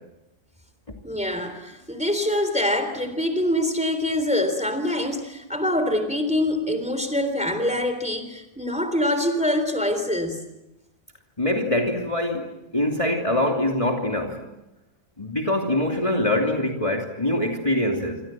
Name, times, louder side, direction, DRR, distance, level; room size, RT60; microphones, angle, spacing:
voice 1, 1.0-10.4, left 1 dB, 5° right, 8 dB, 3.5 m, -25 dB
voice 2, 11.4-14.4 15.2-18.2, left 1 dB, 25° left, 1 dB, 3.0 m, -24 dB
27.5 x 26.0 x 7.7 m, 0.94 s
omnidirectional pair, 1.3 m